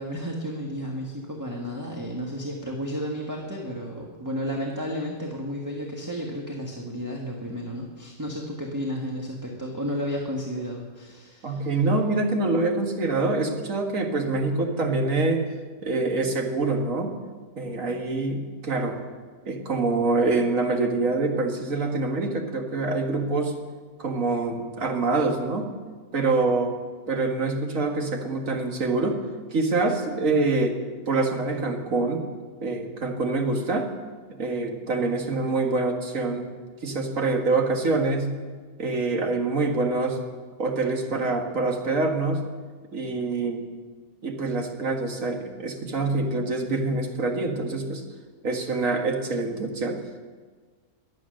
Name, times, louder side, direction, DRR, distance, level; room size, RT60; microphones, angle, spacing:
voice 1, 0.0-11.7, equal, 10° right, -1 dB, 1.5 m, -32 dB
voice 2, 11.4-15.4 15.8-17.2 17.6-19.0 19.5-23.5 24.0-25.7 26.1-26.8 27.1-29.2 29.5-30.8 31.1-32.2 32.6-33.9 34.3-36.5 36.8-38.3 38.8-40.2 40.6-42.4 42.9-43.6 44.2-48.0 48.4-50.0, right 3 dB, 60° right, 3 dB, 2.1 m, -25 dB
22.5 x 8.4 x 6.5 m, 1.5 s
omnidirectional pair, 1.6 m